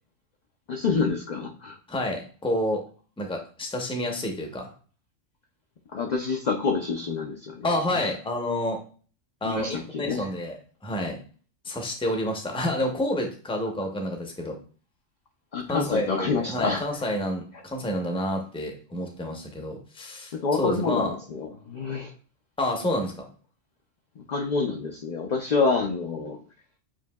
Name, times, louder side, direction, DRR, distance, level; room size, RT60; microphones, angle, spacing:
voice 1, 0.7-1.8 5.9-7.7 7.9-8.1 9.4-10.3 15.5-16.8 20.3-22.1 24.2-26.4, left 4 dB, 55° left, 2 dB, 0.4 m, -27 dB
voice 2, 1.9-2.8 3.2-4.7 7.6-8.8 9.4-10.6 10.8-11.2 11.6-14.6 15.7-20.3 20.6-21.2 22.6-23.3, left 1 dB, 5° left, 2 dB, 0.5 m, -29 dB
7.3 x 2.7 x 2.2 m, 0.40 s
omnidirectional pair, 1.3 m